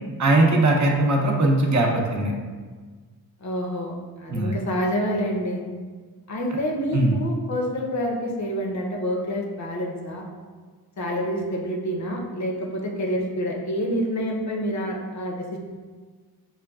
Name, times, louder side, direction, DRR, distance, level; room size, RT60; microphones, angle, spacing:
voice 1, 0.2-2.3 4.3-4.5 6.9-7.2, right 2 dB, 45° right, 1 dB, 0.6 m, -20 dB
voice 2, 3.4-5.6 6.3-10.2 11.0-15.6, equal, 45° left, 0 dB, 0.6 m, -27 dB
5.6 x 2.2 x 2.3 m, 1.5 s
cardioid pair, 80°, 39 cm